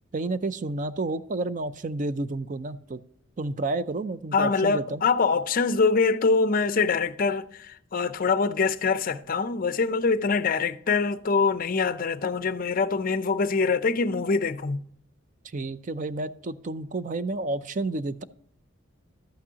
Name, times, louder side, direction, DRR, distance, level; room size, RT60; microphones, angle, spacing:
voice 1, 0.1-3.0 3.4-5.0 15.4-18.2, right 2 dB, 40° right, 0.5 m, -30 dB
voice 2, 4.3-14.8, left 4 dB, 45° left, 0.5 m, -24 dB
12.5 x 8.6 x 2.8 m
head